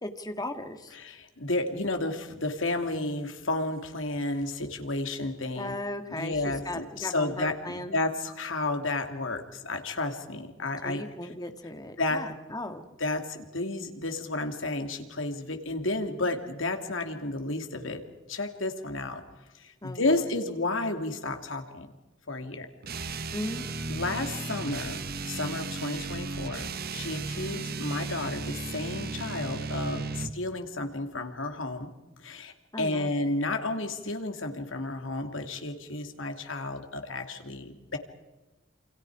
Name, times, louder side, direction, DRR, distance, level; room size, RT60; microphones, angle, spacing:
voice 1, 0.0-1.0 5.6-8.0 10.8-12.9 19.8-20.3 23.3-23.7 32.7-33.1, left 1 dB, 20° left, 7 dB, 1.9 m, -37 dB
voice 2, 0.9-5.7 6.2-11.0 12.0-12.2 13.0-18.0 18.3-19.2 19.5-21.9 22.3-22.7 23.9-31.9 32.2-38.0, left 2 dB, 75° left, 5 dB, 2.8 m, -32 dB
sound 1, 22.8-30.4, right 4 dB, 50° right, 1.2 m, -35 dB
28.5 x 26.5 x 4.9 m, 1.1 s
head